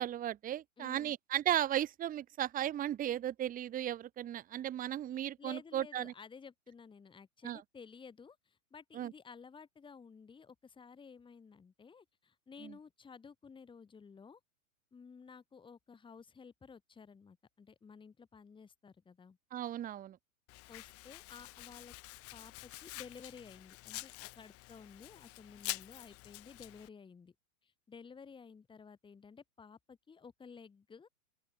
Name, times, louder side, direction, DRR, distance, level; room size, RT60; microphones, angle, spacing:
voice 1, 0.0-6.1 7.4-7.6 8.9-9.1 12.6-12.7 19.5-20.2, right 11 dB, 20° right, 1.5 m, -35 dB
voice 2, 0.8-1.1 5.4-14.4 14.9-19.4 20.7-21.9 22.3-27.3 27.6-31.1, left 5 dB, 10° left, 3.0 m, -54 dB
Domestic sounds home sounds, 20.5-26.9, left 20 dB, 35° left, 2.9 m, -47 dB
open air
hypercardioid pair, 130°, 42 cm